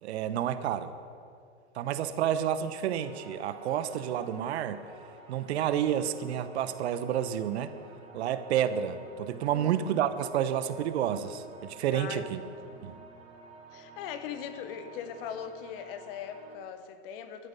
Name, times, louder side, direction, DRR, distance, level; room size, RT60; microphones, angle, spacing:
voice 1, 0.0-0.9 1.7-4.8 5.3-7.7 8.1-12.4 12.8-12.9, right 10 dB, 60° right, 12 dB, 1.0 m, -30 dB
sound 1, 2.9-16.6, right 3 dB, 15° right, 4.1 m, -51 dB
voice 2, 9.5-10.0 11.9-12.5 13.7-17.5, left 8 dB, 45° left, 10 dB, 1.2 m, -40 dB
15.0 x 12.0 x 5.5 m, 2.3 s
hypercardioid pair, 130°, 38 cm